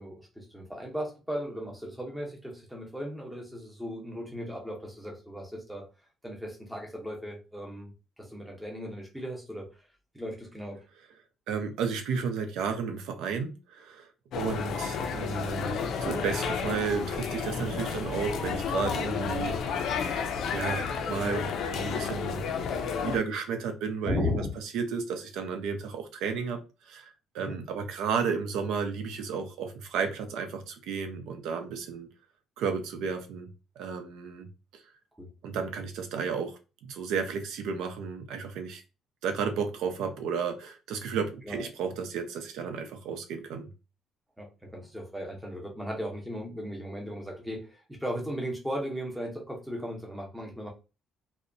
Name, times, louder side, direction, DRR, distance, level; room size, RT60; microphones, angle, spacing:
voice 1, 0.0-5.9 6.2-9.9 10.1-10.8 24.0-24.5 27.4-27.6 35.2-35.3 41.4-41.7 44.4-50.7, equal, 5° right, 0.6 m, -36 dB
voice 2, 11.5-14.1 14.3-20.2 20.5-22.5 23.0-24.4 24.7-32.1 32.6-34.5 35.4-38.8 39.2-43.7, right 6 dB, 80° right, 0.5 m, -33 dB
sound 1, 14.3-23.2, left 6 dB, 55° left, 0.4 m, -31 dB
2.7 x 2.1 x 2.6 m
cardioid pair, 170°, 0 cm